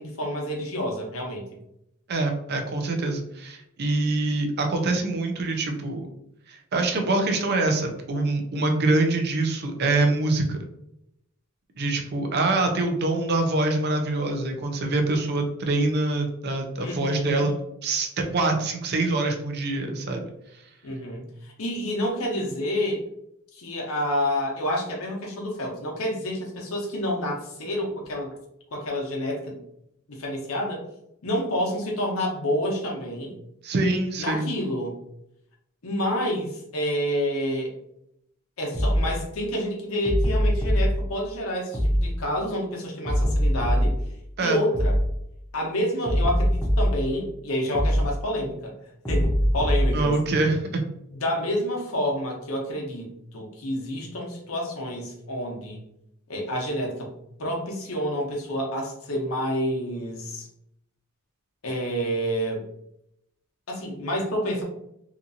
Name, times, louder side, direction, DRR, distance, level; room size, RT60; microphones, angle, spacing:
voice 1, 0.0-1.4 16.8-17.4 19.7-19.9 20.8-21.3 21.6-23.0 23.5-28.3 28.7-29.6 30.1-30.8 31.2-33.3 34.2-35.0 35.8-37.7 38.6-44.0 44.4-44.9 45.5-48.8 49.1-50.2 51.1-55.8 56.3-57.1 57.4-60.5 61.6-62.6 63.7-64.6, equal, 75° left, 0 dB, 0.8 m, -28 dB
voice 2, 2.1-6.1 6.5-10.6 11.8-17.5 17.8-20.2 33.6-34.5 44.4-44.6 49.9-50.8, right 2 dB, 50° right, 4 dB, 0.5 m, -25 dB
sound 1, 38.7-39.1 40.0-40.9 41.7-42.1 43.0-44.0 44.7-45.1 46.0-47.0 47.7-48.1 49.0-50.0, equal, 10° left, 0.7 m, -22 dB
2.8 x 2.5 x 2.6 m, 0.79 s
head